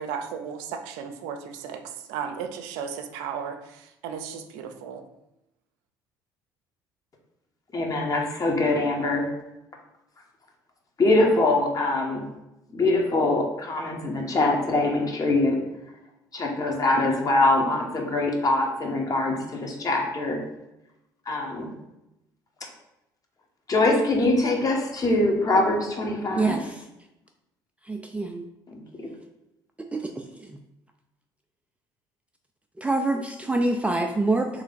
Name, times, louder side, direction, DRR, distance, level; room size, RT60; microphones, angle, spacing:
voice 1, 0.0-5.0, right 7 dB, 75° right, 6 dB, 0.5 m, -35 dB
voice 2, 7.7-9.3 11.0-12.2 12.7-15.6 16.3-20.4 21.3-21.7 23.7-26.6 28.7-29.1, left 2 dB, 35° left, 1 dB, 1.1 m, -23 dB
voice 3, 26.3-26.9 27.8-28.5 29.9-30.6 32.8-34.6, right 2 dB, 10° right, 3 dB, 0.4 m, -26 dB
3.2 x 3.2 x 3.9 m, 0.91 s
hypercardioid pair, 65°, 10 cm